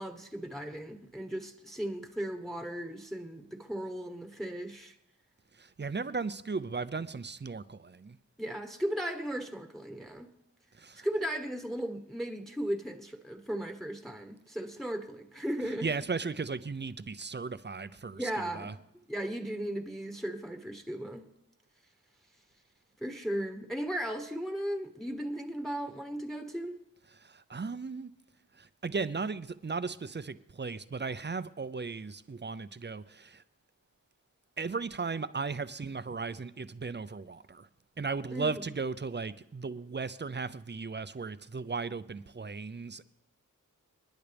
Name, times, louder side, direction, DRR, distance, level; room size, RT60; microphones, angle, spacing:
voice 1, 0.0-4.9 8.4-10.3 11.0-15.9 18.1-18.8 19.1-21.3 23.0-26.7 38.3-38.6, right 1 dB, ahead, 1.2 m, -36 dB
voice 2, 5.5-8.2 10.8-11.1 15.8-18.7 27.1-28.1 28.5-33.4 34.6-37.7 38.0-43.0, right 4 dB, 30° right, 0.6 m, -36 dB
29.5 x 10.0 x 3.5 m
wide cardioid pair, 65°, 34 cm